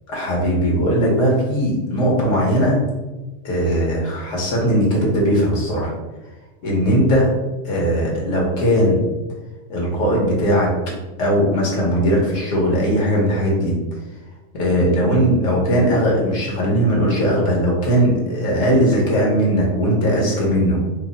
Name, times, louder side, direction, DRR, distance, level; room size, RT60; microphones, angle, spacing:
voice 1, 0.1-2.8 3.4-5.9 6.6-7.3 7.6-9.0 9.7-10.7 11.2-13.7 14.6-20.8, equal, 65° left, -3 dB, 1.2 m, -18 dB
2.8 x 2.0 x 3.8 m, 1.1 s
omnidirectional pair, 1.4 m